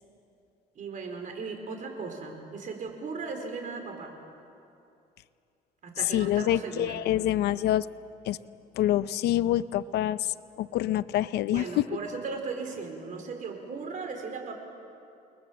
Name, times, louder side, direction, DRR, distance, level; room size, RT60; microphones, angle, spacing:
voice 1, 0.7-4.1 5.8-7.0 11.5-14.5, right 4 dB, 50° right, 4 dB, 4.6 m, -37 dB
voice 2, 6.1-7.9 8.3-8.4 8.8-11.9, left 13 dB, 75° left, 15 dB, 0.7 m, -26 dB
29.0 x 21.5 x 7.6 m, 2.6 s
cardioid pair, 110°, 17 cm